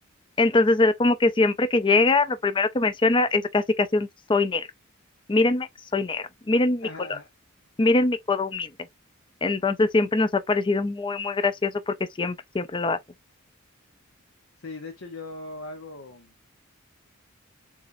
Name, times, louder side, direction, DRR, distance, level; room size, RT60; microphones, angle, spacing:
voice 1, 0.4-4.7 5.3-7.2 7.8-8.7 9.4-13.0, left 3 dB, 25° left, 0.4 m, -23 dB
voice 2, 6.8-7.3 14.6-16.3, left 2 dB, 70° left, 0.8 m, -39 dB
7.2 x 2.5 x 2.6 m
head